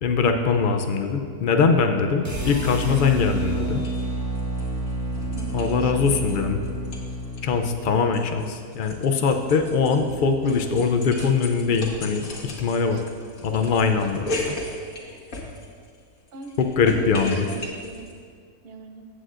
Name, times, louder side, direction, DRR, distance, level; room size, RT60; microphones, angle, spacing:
voice 1, 0.0-3.8 5.5-6.6 7.4-12.3 12.6-13.0 13.4-14.3 16.6-17.5, left 5 dB, 85° left, 5 dB, 0.4 m, -22 dB
sound 1, 2.2-8.4, right 1 dB, 15° right, 0.9 m, -29 dB
sound 2, 3.8-4.0 4.3-6.4 6.6-7.4 7.8-16.0 16.3-18.1, left 2 dB, 65° left, 1.8 m, -36 dB
voice 2, 5.3-6.4 12.9-13.1 16.3-18.1 18.6-19.0, right 3 dB, 55° right, 4 dB, 0.8 m, -41 dB
sound 3, 11.1-12.4 13.7-14.7, right 7 dB, 90° right, 1.2 m, -43 dB
15.5 x 8.2 x 2.5 m, 2.1 s
omnidirectional pair, 1.6 m